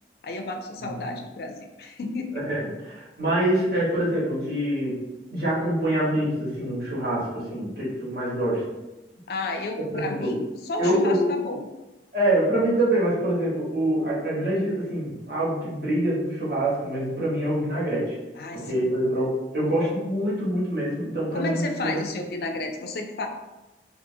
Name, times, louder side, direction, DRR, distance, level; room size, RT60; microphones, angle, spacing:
voice 1, 0.2-2.5 9.3-11.7 18.4-18.9 21.3-23.3, left 3 dB, 55° left, 4 dB, 0.3 m, -32 dB
voice 2, 0.8-1.1 2.3-5.0 5.3-8.6 9.8-10.3 10.8-11.3 12.1-18.2 18.5-21.9, right 1 dB, 55° right, -9 dB, 1.3 m, -25 dB
2.7 x 2.4 x 2.6 m, 1.0 s
head